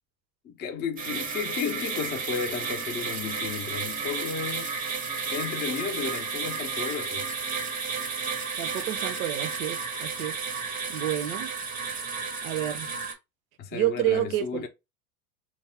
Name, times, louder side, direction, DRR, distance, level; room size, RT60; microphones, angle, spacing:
voice 1, 0.4-4.7 5.3-7.3 13.6-14.7, left 6 dB, 25° left, 0.4 m, -33 dB
sound 1, 1.0-13.1, right 5 dB, 20° right, 0.6 m, -32 dB
voice 2, 8.6-10.4 10.9-11.5 12.4-12.9 13.7-14.7, right 13 dB, 65° right, 0.6 m, -29 dB
2.3 x 2.0 x 3.3 m
hypercardioid pair, 90°, 45 cm